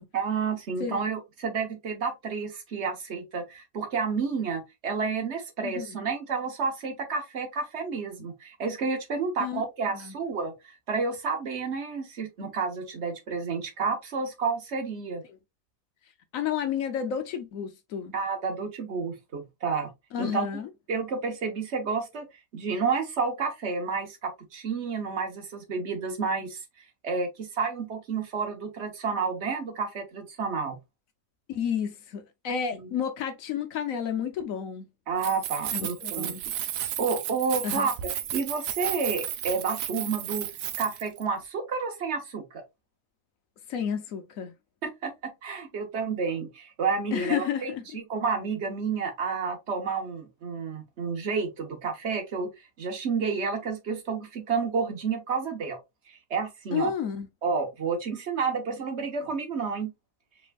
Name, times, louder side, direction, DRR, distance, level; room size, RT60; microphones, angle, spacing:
voice 1, 0.1-15.2 18.1-19.9 20.2-20.5 20.9-22.3 22.5-30.8 32.7-32.9 35.1-36.3 37.0-37.9 38.3-40.5 40.8-42.6 44.8-55.8 56.1-56.9 57.4-59.9, right 5 dB, 45° right, 1.2 m, -30 dB
voice 2, 5.6-6.0 9.4-9.6 9.9-10.1 16.3-18.1 20.1-20.7 31.5-34.9 35.7-36.4 37.6-37.9 43.7-44.5 47.1-47.8 56.7-57.3, left 8 dB, 65° left, 1.0 m, -31 dB
Keys jangling, 35.1-41.2, right 11 dB, 80° right, 1.1 m, -33 dB
5.1 x 3.4 x 2.3 m
omnidirectional pair, 1.7 m